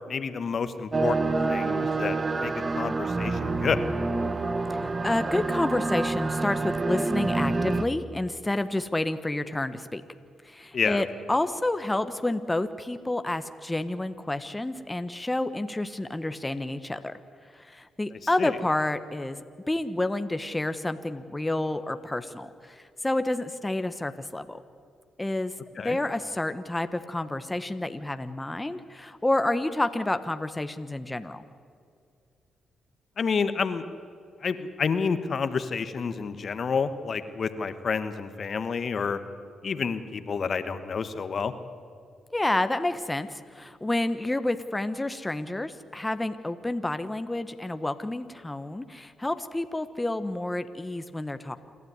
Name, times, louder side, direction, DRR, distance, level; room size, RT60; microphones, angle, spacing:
voice 1, 0.1-3.8 10.7-11.0 18.4-18.6 25.8-26.0 33.2-33.8 34.4-39.2 39.6-41.5, left 5 dB, 55° left, 11 dB, 1.3 m, -29 dB
sound 1, 0.9-7.9, right 3 dB, 35° right, 1.2 m, -27 dB
voice 2, 4.7-10.0 10.4-17.1 17.5-19.4 19.7-24.6 25.2-25.5 25.8-31.4 42.3-51.6, left 2 dB, 15° left, 10 dB, 1.2 m, -29 dB
27.5 x 12.5 x 9.6 m, 2.3 s
supercardioid pair, 60°, 0 cm